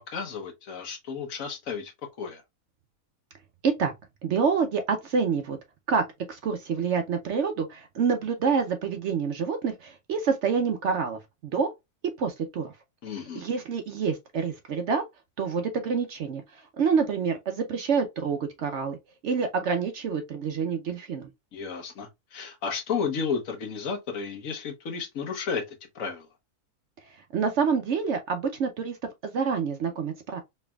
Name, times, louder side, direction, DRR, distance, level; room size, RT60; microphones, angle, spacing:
voice 1, 0.0-1.9 2.2-2.4 13.0-13.4 21.5-26.3, left 5 dB, 65° left, 1.3 m, -33 dB
voice 2, 4.2-5.6 5.9-11.7 12.0-12.7 13.1-15.0 15.4-19.0 19.2-21.3 27.1-29.0 29.2-30.4, right 5 dB, 60° right, 0.8 m, -27 dB
4.2 x 3.3 x 2.2 m
omnidirectional pair, 1.6 m